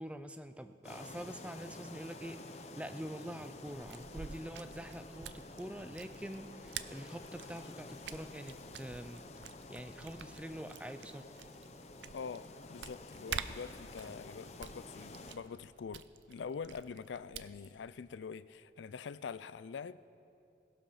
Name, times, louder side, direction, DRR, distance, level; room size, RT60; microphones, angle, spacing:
voice 1, 0.0-9.3 9.7-11.2, right 1 dB, 5° right, 10 dB, 0.4 m, -45 dB
sound 1, 0.8-15.4, left 2 dB, 35° left, 0.7 m, -50 dB
sound 2, 3.7-17.8, right 8 dB, 80° right, 0.5 m, -49 dB
sound 3, 9.2-13.3, left 2 dB, 65° left, 0.9 m, -66 dB
voice 2, 12.1-20.1, left 6 dB, 90° left, 16 dB, 0.4 m, -45 dB
18.0 x 12.0 x 5.7 m, 2.7 s
head